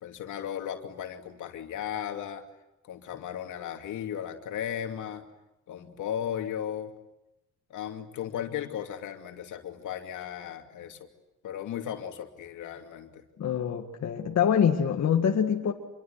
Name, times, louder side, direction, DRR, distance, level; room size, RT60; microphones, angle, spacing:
voice 1, 0.0-2.4 2.8-5.2 5.7-6.9 7.7-11.1 11.4-13.2, left 9 dB, 80° left, 4 dB, 2.7 m, -36 dB
voice 2, 13.4-15.7, left 8 dB, 60° left, 3 dB, 2.0 m, -25 dB
26.5 x 24.0 x 8.2 m, 0.93 s
cardioid pair, 90°, 30 cm